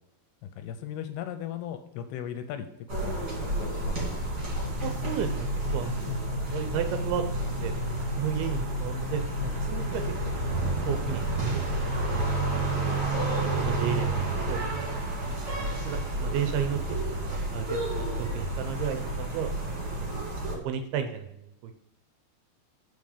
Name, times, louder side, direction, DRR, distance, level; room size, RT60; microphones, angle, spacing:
voice 1, 0.4-4.3 6.1-6.2 9.4-9.5, left 10 dB, 85° left, 8 dB, 2.5 m, -38 dB
podworko domofon, 2.9-20.6, right 2 dB, 35° right, 2.0 m, -31 dB
sound 1, 4.6-12.2, left 2 dB, 45° left, 1.5 m, -35 dB
voice 2, 4.8-5.5 5.7-9.2 9.6-11.2 11.5-12.4 12.7-14.6 15.1-16.8 17.1-19.5 19.9-20.3 20.6-21.7, right 8 dB, 80° right, 8 dB, 2.4 m, -34 dB
7.1 x 5.3 x 4.9 m, 0.84 s
omnidirectional pair, 4.8 m